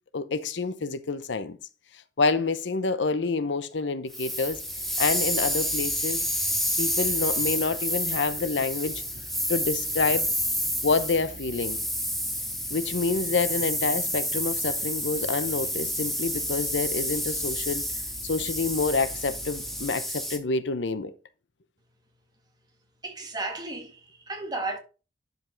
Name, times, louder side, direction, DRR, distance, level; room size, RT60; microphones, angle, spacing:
voice 1, 0.1-1.6 2.2-4.6 5.0-6.2 6.8-9.0 9.5-10.3 10.8-11.8 12.7-17.8 18.2-21.1, left 4 dB, 75° left, 0.7 m, -27 dB
sound 1, 4.1-20.4, equal, ahead, 1.2 m, -29 dB
sound 2, 4.4-19.9, right 1 dB, 45° right, 4.0 m, -47 dB
voice 2, 23.0-24.8, right 2 dB, 20° right, 1.8 m, -34 dB
11.0 x 5.2 x 3.9 m
head